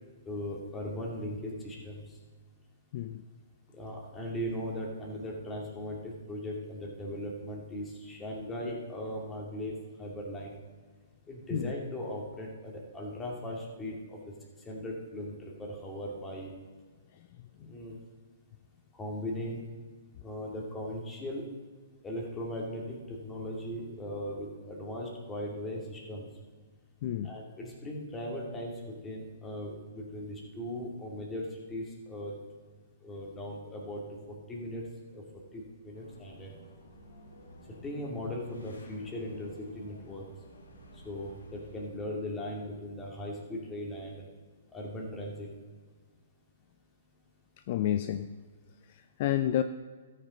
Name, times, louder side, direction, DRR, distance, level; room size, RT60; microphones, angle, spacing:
voice 1, 0.3-2.2 3.7-10.6 11.3-14.2 14.6-16.5 17.6-18.0 19.0-19.6 20.2-21.5 22.0-26.3 27.2-32.4 33.0-34.8 35.1-35.2 35.5-36.5 37.8-40.3 41.0-44.2 44.7-45.5, left 1 dB, 15° left, -1 dB, 2.7 m, -38 dB
voice 2, 27.0-27.3 47.7-48.3 49.2-49.6, left 11 dB, 50° left, 10 dB, 0.4 m, -29 dB
sound 1, 35.9-42.4, left 1 dB, 85° left, 2.4 m, -52 dB
13.5 x 6.7 x 5.2 m, 1.5 s
hypercardioid pair, 125°, 0 cm